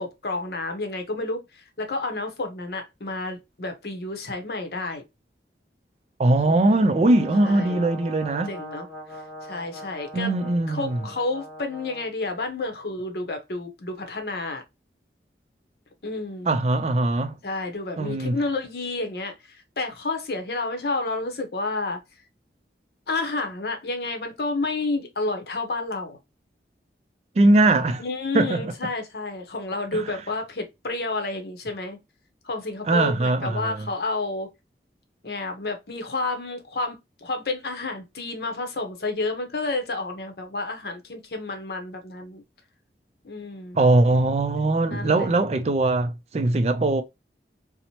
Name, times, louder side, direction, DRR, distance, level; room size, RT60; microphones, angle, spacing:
voice 1, 0.0-5.0 6.5-7.1 7.4-7.8 8.5-10.3 10.7-14.6 16.0-16.5 17.4-22.0 23.1-26.2 28.0-32.0 32.4-34.5 35.2-42.4 43.2-43.8 44.9-45.3, left 2 dB, 65° left, 0.7 m, -30 dB
voice 2, 6.2-8.5 10.1-11.0 16.5-17.4 18.0-18.4 27.4-28.0 28.3-28.7 29.9-30.2 32.9-33.9 43.7-47.0, right 2 dB, 35° right, 0.3 m, -21 dB
Brass instrument, 6.9-12.1, equal, 5° left, 1.0 m, -40 dB
2.8 x 2.0 x 2.8 m
head